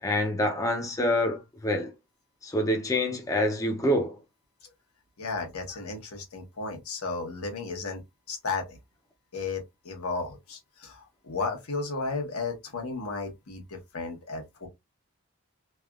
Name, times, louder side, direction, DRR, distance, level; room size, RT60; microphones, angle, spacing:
voice 1, 0.0-1.9 2.4-4.2, left 1 dB, 15° left, 0.5 m, -26 dB
voice 2, 5.2-8.0 8.3-8.8 9.3-14.7, left 3 dB, 80° left, 1.0 m, -34 dB
3.3 x 2.3 x 2.2 m
head